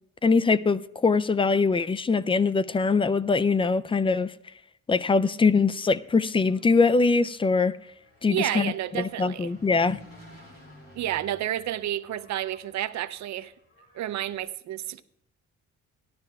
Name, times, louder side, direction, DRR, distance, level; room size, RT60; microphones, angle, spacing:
voice 1, 0.2-4.3 4.9-7.8 8.2-10.0, left 4 dB, 20° left, 0.3 m, -23 dB
Engine, 5.7-14.4, left 1 dB, 50° left, 4.4 m, -54 dB
voice 2, 8.3-9.5 10.9-13.5 13.9-15.0, right 12 dB, 65° right, 0.6 m, -30 dB
17.5 x 11.5 x 2.3 m
cardioid pair, 90°, 30 cm